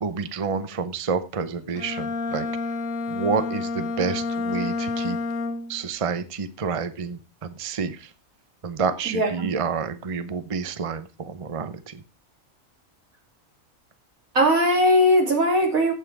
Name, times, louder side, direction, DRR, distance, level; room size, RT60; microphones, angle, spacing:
voice 1, 0.0-2.5 3.1-5.2 5.7-8.1 8.6-12.0, right 5 dB, 30° right, 12 dB, 0.8 m, -29 dB
Bowed string instrument, 1.7-5.9, left 3 dB, 75° left, 1.4 m, -29 dB
voice 2, 9.1-9.5 14.4-15.9, equal, 85° right, 2 dB, 3.5 m, -19 dB
14.5 x 5.7 x 4.7 m, 0.29 s
omnidirectional pair, 1.4 m